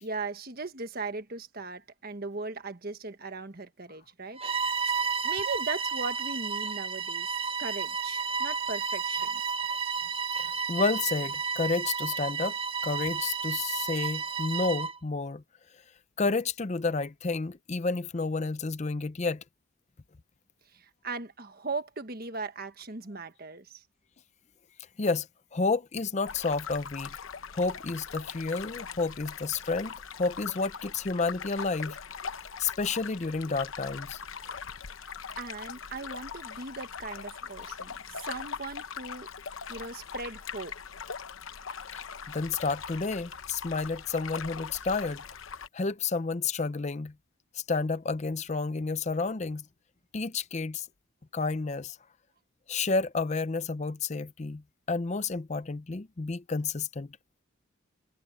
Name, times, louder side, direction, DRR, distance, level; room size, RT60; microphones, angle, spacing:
voice 1, 0.0-4.7 5.2-9.4 20.7-23.8 35.0-39.3 39.7-40.7, right 3 dB, 45° right, 1.4 m, -38 dB
Bowed string instrument, 4.4-15.0, right 5 dB, 25° right, 0.8 m, -32 dB
voice 2, 10.4-12.6 12.8-15.4 16.2-19.4 25.0-25.3 25.5-27.2 27.5-32.0 32.6-34.2 41.9-42.0 42.3-45.2 45.7-47.1 47.5-49.6 50.1-50.9 51.3-52.0 52.7-54.6 54.9-57.1, left 4 dB, 30° left, 0.5 m, -30 dB
sound 1, 26.3-45.7, left 6 dB, 70° left, 0.9 m, -41 dB
head